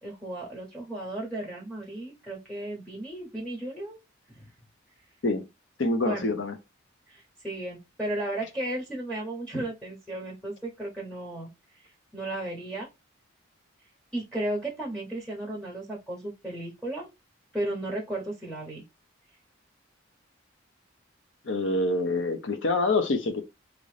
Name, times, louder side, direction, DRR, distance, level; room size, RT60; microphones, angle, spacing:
voice 1, 0.0-4.0 4.3-4.4 6.0-6.3 7.1-11.5 12.1-12.9 14.1-17.1 17.5-18.8, right 1 dB, 5° left, 0.9 m, -34 dB
voice 2, 5.8-6.5 21.4-23.4, left 2 dB, 65° left, 0.7 m, -26 dB
2.9 x 2.5 x 3.2 m
head